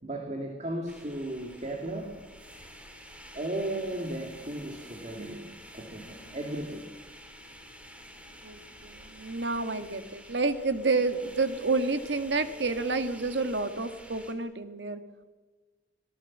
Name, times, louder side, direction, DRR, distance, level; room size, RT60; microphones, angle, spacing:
voice 1, 0.0-2.2 3.3-6.9, right 1 dB, 40° right, 3 dB, 2.6 m, -35 dB
sound 1, 0.9-14.3, equal, 5° right, 2.6 m, -49 dB
voice 2, 8.4-15.0, right 3 dB, 75° right, 9 dB, 1.8 m, -29 dB
25.0 x 18.0 x 7.5 m, 1.3 s
head